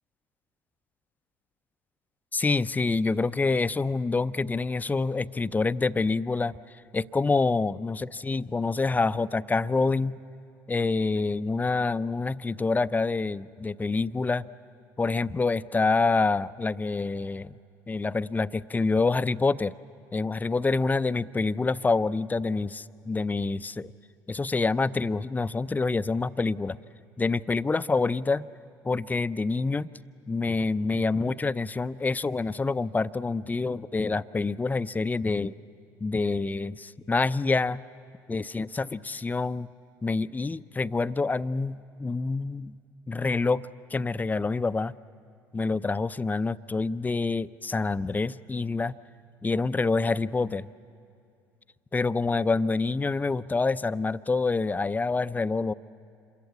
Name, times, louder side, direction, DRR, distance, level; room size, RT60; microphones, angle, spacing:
voice 1, 2.3-6.6 6.9-10.2 10.7-14.5 15.0-17.5 17.9-19.7 20.1-23.9 24.3-26.8 27.2-28.5 28.8-29.9 30.3-35.5 36.0-37.8 38.3-39.7 40.0-42.7 43.1-44.9 45.5-49.0 49.4-50.7 51.9-55.7, left 3 dB, 15° left, 15 dB, 0.5 m, -27 dB
27.5 x 22.5 x 8.4 m, 2.6 s
figure-of-eight pair, 60°, 11 cm